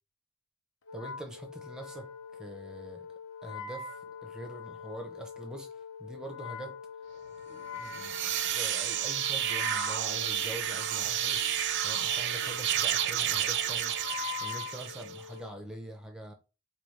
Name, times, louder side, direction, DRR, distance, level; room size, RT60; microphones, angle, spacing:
Wind instrument woodwind instrument, 0.9-15.6, left 7 dB, 65° left, 0.5 m, -43 dB
voice 1, 0.9-3.1 3.4-6.8 7.5-11.5 11.8-14.0 14.4-16.3, right 1 dB, 5° right, 0.5 m, -44 dB
sound 1, 7.8-15.2, right 10 dB, 55° right, 0.4 m, -31 dB
4.8 x 2.3 x 3.1 m
head